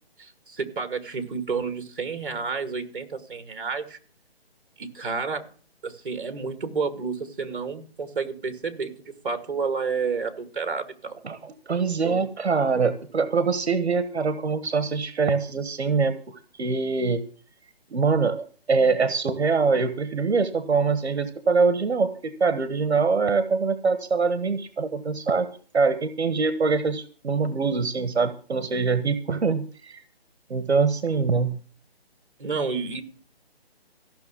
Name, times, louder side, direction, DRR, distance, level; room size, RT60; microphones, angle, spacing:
voice 1, 0.2-4.0 4.8-5.5 5.8-11.2 12.0-12.3 32.4-33.0, right 5 dB, 55° right, 9 dB, 2.5 m, -30 dB
voice 2, 11.2-17.2 17.9-25.5 25.7-30.0 30.5-31.5, right 4 dB, 80° right, 12 dB, 1.5 m, -24 dB
15.0 x 6.4 x 8.6 m, 0.41 s
hypercardioid pair, 175°, 32 cm